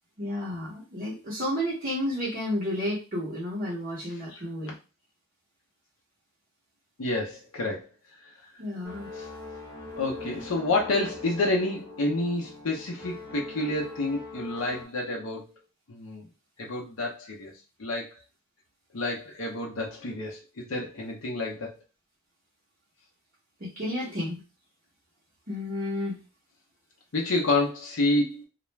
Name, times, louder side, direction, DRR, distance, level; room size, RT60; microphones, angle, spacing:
voice 1, 0.2-4.7 8.6-9.1 23.6-24.4 25.5-26.2, left 1 dB, 40° right, -8 dB, 0.8 m, -31 dB
voice 2, 7.0-7.9 8.2-8.5 9.1-9.3 10.0-15.5 15.9-16.3 16.6-17.5 17.8-18.1 18.9-21.7 27.1-28.4, left 2 dB, 75° left, -1 dB, 0.7 m, -29 dB
sound 1, 8.8-14.9, left 3 dB, 15° left, 1.0 m, -42 dB
2.4 x 2.1 x 3.1 m, 0.31 s
head